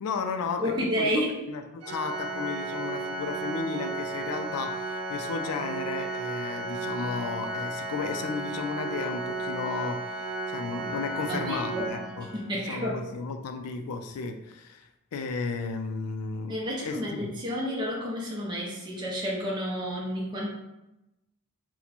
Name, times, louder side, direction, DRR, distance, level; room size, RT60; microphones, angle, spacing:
voice 1, 0.0-0.7 1.0-1.1 1.5-12.3 12.7-16.6 16.8-17.4, left 4 dB, 85° left, 6 dB, 0.4 m, -34 dB
voice 2, 0.6-1.4 11.3-11.9 12.3-13.0 16.5-20.5, equal, 20° right, -4 dB, 0.5 m, -30 dB
Organ, 1.8-12.7, right 2 dB, 80° right, 0.5 m, -34 dB
4.0 x 2.1 x 2.9 m, 0.93 s
head